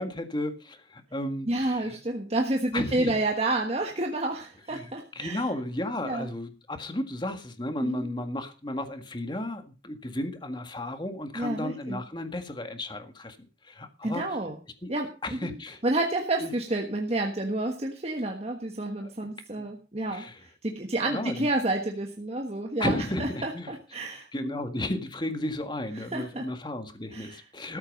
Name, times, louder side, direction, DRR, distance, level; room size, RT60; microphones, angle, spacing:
voice 1, 0.0-2.0 2.7-3.1 4.7-13.4 13.7-14.2 14.8-14.9 15.2-15.8 16.4-16.5 19.0-19.1 19.6-19.7 20.1-20.4 21.0-21.5 22.8-23.7 24.3-27.8, left 1 dB, 25° left, 8 dB, 1.7 m, -33 dB
voice 2, 1.5-5.4 6.0-6.3 7.8-8.1 11.3-12.0 14.0-14.6 14.9-15.6 15.8-20.2 20.6-24.7 26.0-26.5 27.1-27.4, right 2 dB, 35° right, 2 dB, 1.4 m, -30 dB
13.5 x 8.9 x 5.3 m, 0.34 s
head